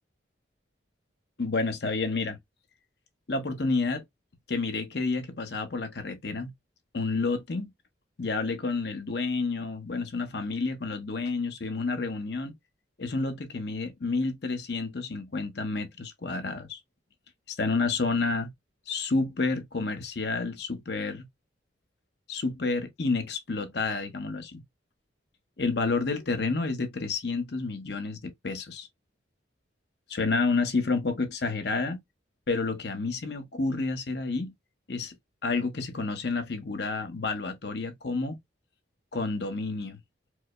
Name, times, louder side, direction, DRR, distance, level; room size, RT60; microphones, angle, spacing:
voice 1, 1.4-2.4 3.3-4.0 4.5-6.5 6.9-7.7 8.2-12.5 13.0-16.8 17.5-18.5 18.9-21.3 22.3-24.6 25.6-28.9 30.1-32.0 32.5-34.5 34.9-35.1 35.4-38.4 39.1-40.0, left 3 dB, 60° left, 0.7 m, -30 dB
4.6 x 2.1 x 2.2 m
head